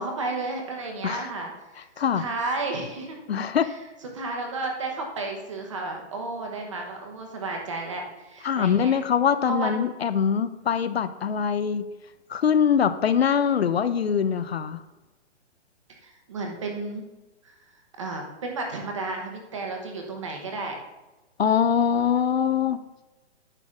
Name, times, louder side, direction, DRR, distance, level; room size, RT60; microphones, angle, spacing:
voice 1, 0.0-3.2 3.6-3.7 4.1-8.9 9.4-9.9 16.0-17.0 17.4-17.5 18.0-20.8, right 3 dB, 25° right, 2 dB, 1.1 m, -32 dB
voice 2, 3.3-3.7 8.4-11.9 12.3-14.8 21.4-22.8, left 7 dB, 60° left, 12 dB, 0.5 m, -23 dB
9.9 x 4.0 x 6.3 m, 1.1 s
hypercardioid pair, 180°, 36 cm